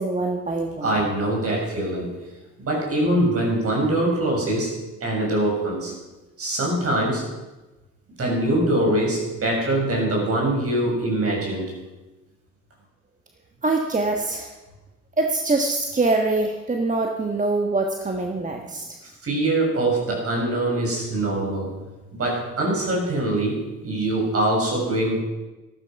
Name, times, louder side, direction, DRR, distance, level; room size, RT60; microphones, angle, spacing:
voice 1, 0.0-1.0 13.6-14.5 15.2-18.8, right 2 dB, 25° right, 3 dB, 1.5 m, -24 dB
voice 2, 0.8-2.1 2.6-4.7 5.0-5.9 6.4-7.2 8.2-11.7 19.2-21.7 22.1-23.5 23.8-25.2, right 1 dB, 50° right, -1 dB, 6.6 m, -23 dB
14.0 x 12.5 x 6.0 m, 1.1 s
cardioid pair, 90°, 30 cm